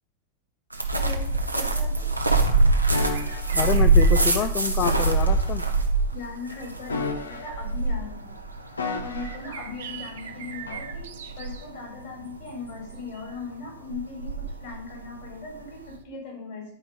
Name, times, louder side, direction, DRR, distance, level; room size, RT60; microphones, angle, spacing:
sound 1, 0.7-15.9, right 3 dB, 85° right, 1.1 m, -24 dB
voice 1, 0.9-2.1 6.1-8.4 9.0-16.8, left 4 dB, 50° left, 1 dB, 3.8 m, -39 dB
sound 2, 2.9-3.5 4.8-5.5 6.8-7.8 8.8-9.5 10.7-10.9, left 4 dB, 75° left, 1.0 m, -33 dB
sound 3, 3.1-5.3 6.2-6.3 7.2-7.3 9.1-11.7 13.1-13.3 15.9-16.0, right 9 dB, 60° right, 1.0 m, -42 dB
voice 2, 3.5-5.6, left 9 dB, 35° left, 10 dB, 0.6 m, -27 dB
10.5 x 5.1 x 5.5 m, 0.69 s
figure-of-eight pair, 90°, 0 cm